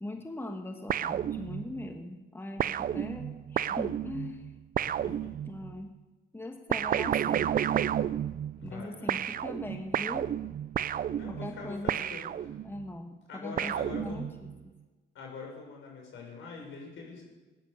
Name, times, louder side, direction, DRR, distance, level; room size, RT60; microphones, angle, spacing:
voice 1, 0.0-4.5 5.5-5.9 6.3-7.5 8.6-10.3 11.3-12.0 12.6-14.5, left 1 dB, 10° left, 5 dB, 1.3 m, -41 dB
sound 1, 0.9-1.9 2.6-5.8 6.7-8.8 9.1-12.8 13.6-14.6, right 10 dB, 45° right, 0.4 m, -31 dB
voice 2, 4.8-5.3 8.6-9.4 11.2-12.6 13.3-14.2 15.1-17.2, left 4 dB, 75° left, 0 dB, 6.0 m, -44 dB
16.0 x 10.5 x 6.8 m, 1.2 s
cardioid pair, 90°, 20 cm